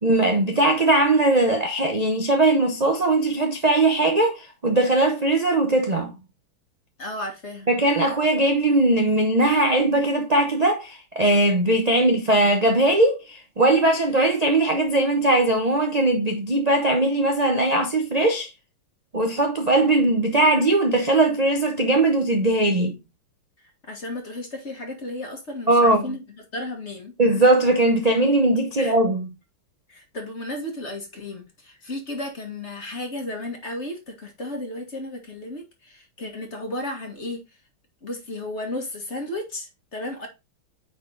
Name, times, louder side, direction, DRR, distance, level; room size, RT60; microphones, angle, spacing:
voice 1, 0.0-6.1 7.7-18.5 19.1-23.0 25.7-26.2 27.2-29.3, right 2 dB, 40° right, 0.6 m, -20 dB
voice 2, 7.0-7.7 23.8-26.2 26.5-27.1 28.8-29.0 29.9-37.4 38.0-40.3, left 1 dB, 35° left, 2.0 m, -33 dB
9.2 x 4.1 x 3.9 m
omnidirectional pair, 2.3 m